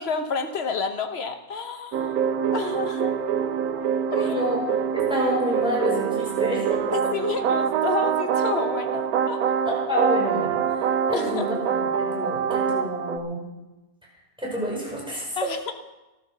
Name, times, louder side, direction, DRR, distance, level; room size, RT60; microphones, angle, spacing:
voice 1, 0.0-2.0 2.5-3.1 4.1-4.4 6.9-9.4 11.1-11.6 15.4-15.7, left 5 dB, 45° left, 7 dB, 1.2 m, -29 dB
sound 1, 1.9-13.2, right 8 dB, 70° right, 1.2 m, -25 dB
voice 2, 4.2-4.6 4.9-6.7 9.7-10.6 11.1-11.6 12.0-13.4 14.4-15.4, equal, 5° right, -4 dB, 5.5 m, -28 dB
12.5 x 12.5 x 6.7 m, 1.1 s
omnidirectional pair, 1.7 m